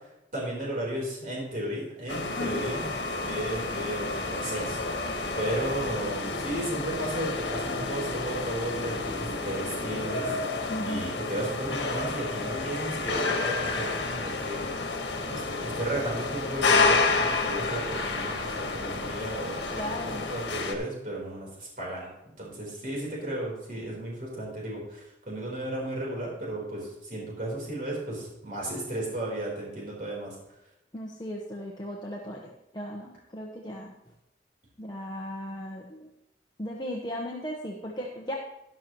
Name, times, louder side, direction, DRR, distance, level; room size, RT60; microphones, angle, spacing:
voice 1, 0.3-2.9 3.2-4.8 5.4-10.4 10.8-15.0 15.3-20.0 20.3-22.1 22.4-30.4, right 1 dB, 45° right, -3 dB, 3.9 m, -34 dB
sound 1, 2.1-20.8, left 3 dB, 75° left, 1.5 m, -30 dB
voice 2, 10.7-11.1 19.7-20.3 30.9-33.9 34.8-36.1 36.6-38.3, equal, 25° left, -2 dB, 1.0 m, -36 dB
13.0 x 11.0 x 3.0 m, 0.91 s
head